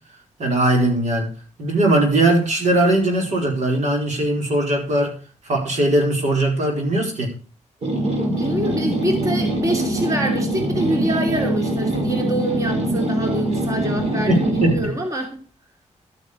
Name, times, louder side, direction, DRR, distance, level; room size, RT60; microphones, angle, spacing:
voice 1, 0.4-1.3 1.6-5.2 5.5-7.3 14.3-14.8, right 1 dB, 70° right, 4.6 m, -19 dB
sound 1, 7.8-14.9, right 1 dB, 55° right, 4.3 m, -23 dB
voice 2, 8.3-15.3, right 1 dB, 25° right, 2.7 m, -26 dB
12.5 x 9.4 x 5.0 m
wide cardioid pair, 160°, 12 cm